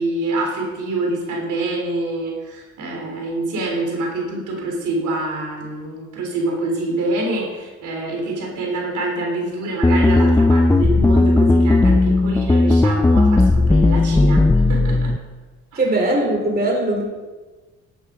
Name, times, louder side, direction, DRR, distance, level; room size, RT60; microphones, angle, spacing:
voice 1, 0.0-14.4 14.7-15.1 15.7-15.8, right 2 dB, 80° right, 0 dB, 3.6 m, -25 dB
sound 1, 9.8-15.2, left 2 dB, 10° left, 0.5 m, -15 dB
voice 2, 15.8-17.0, right 2 dB, 30° right, 1 dB, 3.7 m, -20 dB
12.0 x 11.0 x 5.0 m, 1.3 s
cardioid pair, 90°, 30 cm